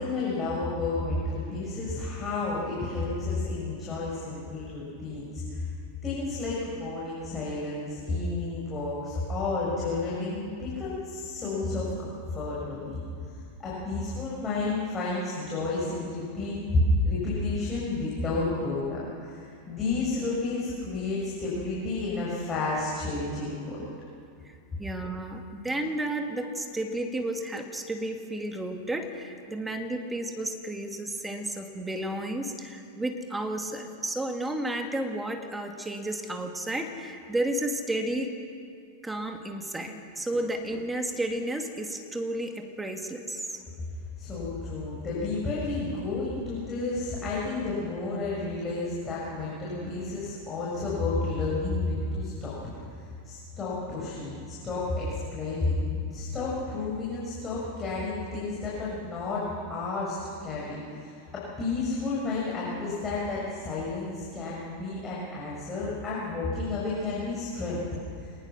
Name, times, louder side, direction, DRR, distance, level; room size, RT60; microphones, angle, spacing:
voice 1, 0.0-5.7 6.0-13.0 13.6-23.8 44.2-52.5 53.2-55.8 56.1-67.9, left 3 dB, 20° left, -6 dB, 6.8 m, -31 dB
voice 2, 24.3-38.3 39.0-43.6, right 1 dB, 10° right, 5 dB, 2.3 m, -32 dB
25.5 x 20.5 x 6.3 m, 2.4 s
figure-of-eight pair, 90°, 0 cm